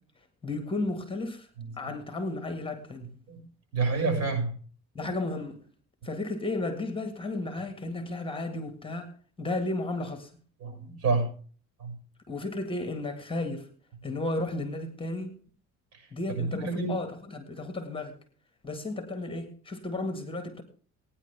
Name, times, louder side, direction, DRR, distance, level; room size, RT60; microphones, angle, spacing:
voice 1, 0.4-1.5 1.8-3.1 5.0-5.6 6.0-10.3 12.3-13.7 14.0-15.4 16.1-18.2 18.6-20.6, left 2 dB, 20° left, 1.8 m, -33 dB
voice 2, 3.7-4.5 10.6-11.3 11.8-11.9 16.4-17.0, right 4 dB, 60° right, 6.3 m, -28 dB
18.0 x 9.9 x 3.4 m
cardioid pair, 100°, 29 cm